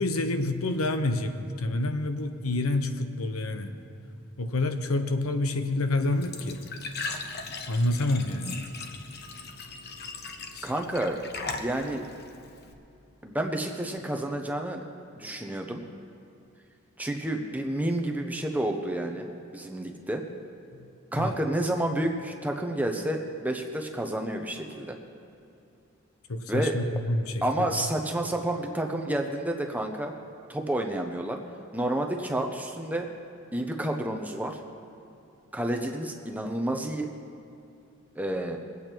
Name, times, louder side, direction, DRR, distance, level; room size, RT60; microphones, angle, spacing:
voice 1, 0.0-3.7 4.4-6.6 7.7-8.6 10.5-10.7 20.8-20.9 21.2-21.4 26.3-27.7, left 2 dB, 80° left, 7 dB, 0.9 m, -28 dB
Glass / Trickle dribble / Fill (with liquid), 6.0-12.7, left 3 dB, 45° left, 0.9 m, -39 dB
voice 2, 10.6-11.2 11.5-12.1 13.2-14.8 15.2-15.8 17.0-20.2 21.1-25.0 26.5-26.8 27.4-30.1 30.5-31.4 31.7-33.1 33.5-34.6 35.5-37.1 38.2-38.6, right 1 dB, 5° right, 3 dB, 0.8 m, -30 dB
22.0 x 8.5 x 4.5 m, 2.7 s
head